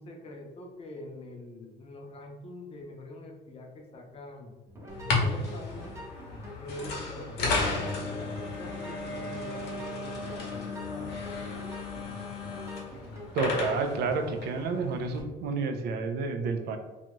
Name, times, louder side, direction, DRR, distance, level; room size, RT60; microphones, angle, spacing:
voice 1, 0.0-4.5 5.1-6.0 6.6-11.1, left 1 dB, 35° left, 1 dB, 0.6 m, -44 dB
sound 1, 4.7-14.3, equal, 15° right, 0.7 m, -45 dB
sound 2, 4.9-15.2, left 3 dB, 75° left, 0.8 m, -34 dB
voice 2, 13.3-16.8, right 4 dB, 70° right, 6 dB, 0.4 m, -30 dB
2.6 x 2.3 x 3.0 m, 1.2 s
cardioid pair, 110°, 17 cm